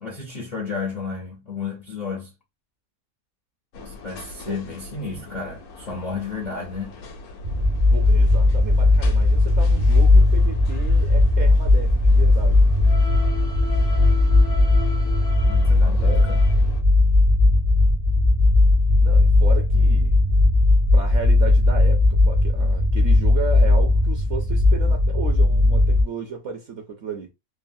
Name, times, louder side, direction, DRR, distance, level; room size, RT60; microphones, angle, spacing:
voice 1, 0.0-2.3 3.8-7.0 15.4-16.4, left 5 dB, 60° left, 0.4 m, -32 dB
sound 1, 3.7-16.8, left 2 dB, 85° left, 1.2 m, -38 dB
sound 2, 7.4-26.0, left 2 dB, 45° right, 0.4 m, -17 dB
voice 2, 7.9-12.6 15.9-16.3 19.0-20.2 20.9-27.3, right 5 dB, 60° right, 0.8 m, -34 dB
3.2 x 2.0 x 2.5 m
omnidirectional pair, 1.5 m